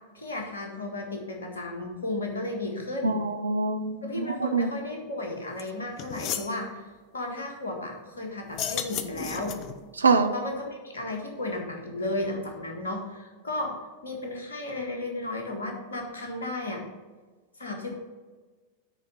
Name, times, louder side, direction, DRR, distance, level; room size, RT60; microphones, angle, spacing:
voice 1, 0.1-3.2 4.0-6.8 7.1-9.6 10.3-13.8 14.0-16.8 17.6-17.9, left 2 dB, 70° left, 2 dB, 1.7 m, -34 dB
voice 2, 3.0-4.3 4.5-4.7 10.0-10.3, right 4 dB, 75° right, 8 dB, 0.7 m, -24 dB
sound 1, 5.6-5.7 6.0-6.5 8.5-9.8, left 9 dB, 40° left, 0.6 m, -33 dB
10.0 x 4.2 x 5.4 m, 1.4 s
figure-of-eight pair, 90°, 0 cm